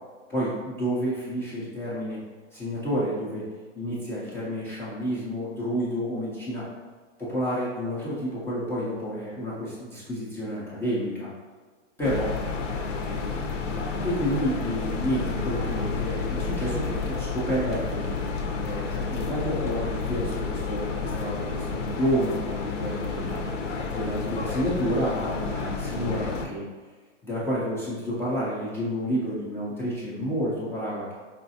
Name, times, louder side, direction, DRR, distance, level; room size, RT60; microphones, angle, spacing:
voice 1, 0.3-2.2 2.5-3.4 3.8-6.6 7.2-11.3 12.0-12.3 14.0-18.2 18.6-23.4 23.9-26.6 27.2-31.1, equal, 5° left, -9 dB, 0.3 m, -30 dB
sound 1, 12.0-26.5, left 4 dB, 80° left, 0.7 m, -30 dB
4.9 x 2.3 x 2.7 m, 1.5 s
hypercardioid pair, 130°, 37 cm